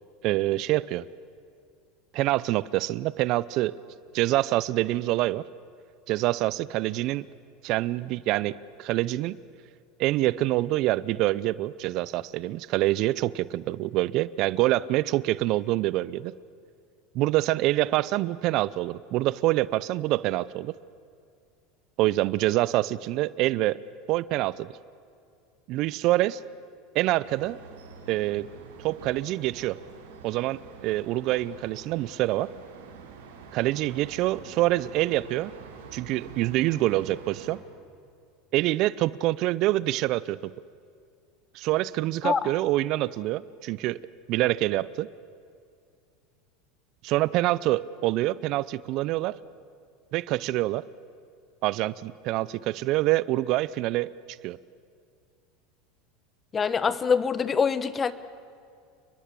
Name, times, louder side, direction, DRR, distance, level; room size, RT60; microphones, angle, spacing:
voice 1, 0.2-1.1 2.1-3.7 4.1-5.4 6.1-7.3 7.6-9.4 10.0-16.3 17.1-20.8 22.0-23.8 24.1-24.7 25.7-26.4 26.9-27.6 28.1-28.5 28.8-29.8 30.2-32.5 33.5-35.5 35.9-37.6 38.5-40.5 41.5-44.0 44.3-45.1 47.0-49.4 50.1-50.8 51.6-54.1 54.4-54.6, right 17 dB, 55° right, 20 dB, 0.6 m, -26 dB
sound 1, 27.2-37.6, right 5 dB, 80° right, 4.3 m, -46 dB
voice 2, 56.5-58.1, left 6 dB, 25° left, 15 dB, 1.3 m, -24 dB
29.0 x 21.5 x 8.4 m, 2.3 s
hypercardioid pair, 95°, 0 cm